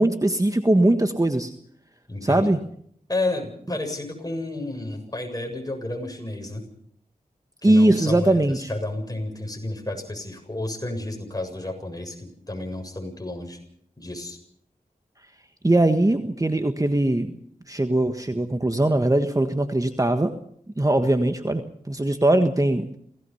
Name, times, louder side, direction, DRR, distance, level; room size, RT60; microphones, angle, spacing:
voice 1, 0.0-1.5 2.2-2.6 7.6-8.7 15.6-17.3 17.7-20.3 20.8-23.0, right 1 dB, 20° right, 7 dB, 1.5 m, -21 dB
voice 2, 2.1-2.5 3.1-6.6 7.6-13.6 14.0-14.4, left 2 dB, 25° left, 3 dB, 7.5 m, -31 dB
27.5 x 18.0 x 5.7 m, 0.67 s
cardioid pair, 45°, 16 cm